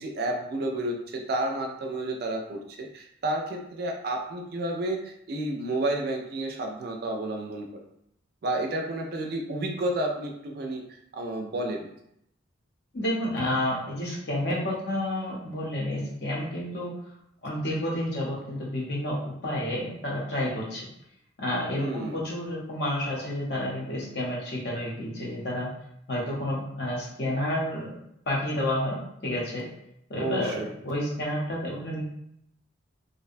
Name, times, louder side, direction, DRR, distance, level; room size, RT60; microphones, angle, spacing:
voice 1, 0.0-7.8 8.4-11.9 21.8-22.2 30.2-30.7, right 1 dB, 50° right, 1 dB, 0.3 m, -31 dB
voice 2, 12.9-16.9 17.4-20.9 21.4-25.7 26.1-27.9 28.3-29.0 29.2-29.6 30.1-32.0, left 1 dB, 55° left, -4 dB, 0.7 m, -30 dB
2.6 x 2.1 x 2.5 m, 0.76 s
head